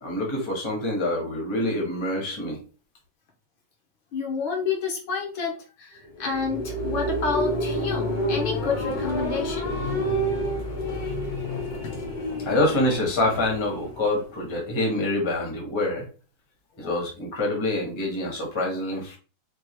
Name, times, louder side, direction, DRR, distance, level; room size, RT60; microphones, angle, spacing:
voice 1, 0.0-2.6 12.4-16.1 16.8-19.2, left 1 dB, 20° left, 0 dB, 0.8 m, -26 dB
voice 2, 4.1-9.7 16.8-17.0, left 4 dB, 70° left, 1 dB, 1.7 m, -29 dB
sound 1, 6.1-14.7, equal, 55° left, 1.2 m, -29 dB
4.6 x 2.4 x 3.0 m, 0.35 s
omnidirectional pair, 2.4 m